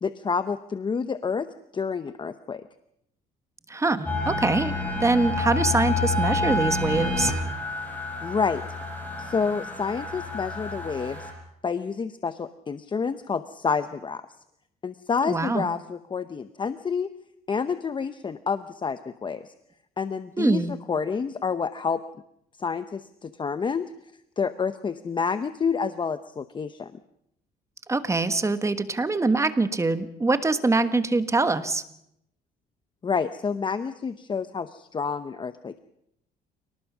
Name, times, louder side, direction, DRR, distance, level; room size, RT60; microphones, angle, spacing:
voice 1, 0.0-1.5 1.7-2.6 8.2-8.6 9.2-11.3 11.6-14.2 14.8-17.1 17.5-19.5 20.0-20.6 20.9-22.0 22.6-23.9 24.4-26.9 33.0-35.8, left 5 dB, 30° left, 11 dB, 0.9 m, -28 dB
voice 2, 3.7-7.3 15.2-15.7 20.4-20.7 27.9-31.8, right 3 dB, 15° right, 10 dB, 1.4 m, -24 dB
sound 1, 4.1-11.3, left 2 dB, 10° left, 7.6 m, -29 dB
28.0 x 19.0 x 6.2 m, 0.78 s
cardioid pair, 110°, 17 cm